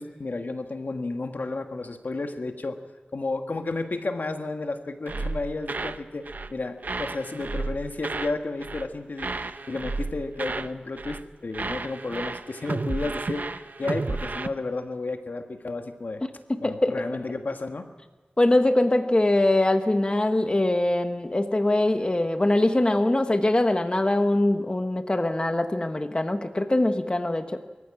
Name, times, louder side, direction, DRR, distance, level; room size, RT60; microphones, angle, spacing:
voice 1, 0.0-2.8 3.1-16.2 16.6-17.9, left 3 dB, 75° left, 6 dB, 1.6 m, -32 dB
sound 1, 5.1-6.0 6.3-6.5 6.8-8.4 8.6-8.9 9.2-10.7 11.0-11.3 11.5-14.5, right 3 dB, 65° right, 0.9 m, -32 dB
voice 2, 16.5-17.1 18.4-27.6, left 1 dB, 30° left, 7 dB, 1.2 m, -23 dB
23.5 x 15.0 x 8.7 m, 1.3 s
wide cardioid pair, 60°, 3 cm